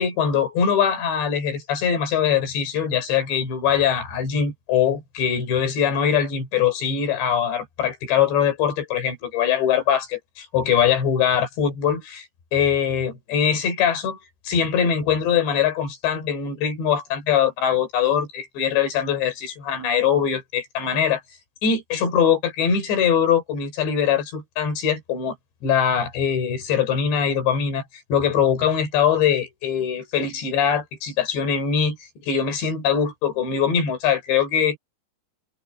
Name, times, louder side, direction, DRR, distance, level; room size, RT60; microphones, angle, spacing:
voice 1, 0.0-12.3 12.5-14.2 14.5-21.2 21.6-25.4 25.6-27.8 28.1-32.0 32.2-34.8, left 8 dB, 80° left, 7.2 m, -22 dB
omnidirectional pair, 5.0 m